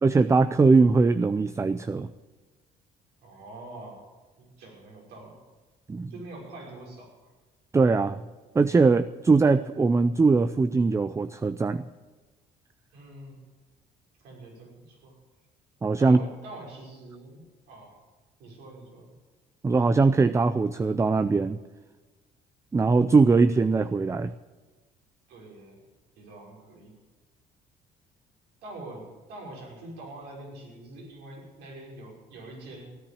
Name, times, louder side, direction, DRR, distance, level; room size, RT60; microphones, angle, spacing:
voice 1, 0.0-2.1 5.9-6.1 7.7-8.2 8.5-11.8 15.8-16.2 19.6-21.6 22.7-24.3, right 4 dB, 15° right, 13 dB, 0.5 m, -21 dB
voice 2, 3.2-4.0 4.4-5.4 6.1-7.1 12.9-13.4 14.2-15.2 16.0-17.4 17.7-18.0 18.4-19.1 25.3-25.8 26.2-27.0 28.6-32.9, right 2 dB, 80° right, -1 dB, 5.7 m, -44 dB
16.0 x 10.0 x 8.6 m, 1.3 s
cardioid pair, 110°, 17 cm